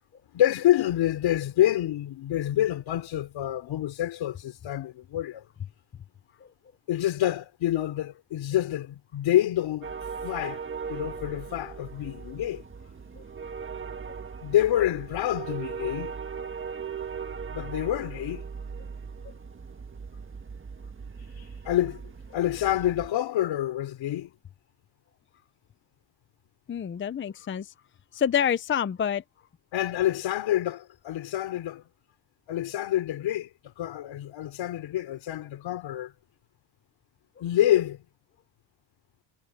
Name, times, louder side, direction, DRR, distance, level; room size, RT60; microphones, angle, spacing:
voice 1, 0.3-5.4 6.9-9.9 10.2-10.6 10.9-12.6 14.4-16.1 17.5-18.4 21.4-22.0 22.3-24.3 29.7-31.8 32.5-36.1 37.4-38.0, left 13 dB, 75° left, 3.8 m, -27 dB
sound 1, 9.8-23.1, right 6 dB, 25° right, 1.6 m, -39 dB
voice 2, 26.7-27.7 28.1-29.2, left 8 dB, 25° left, 0.6 m, -27 dB
cardioid pair, 135°, 46 cm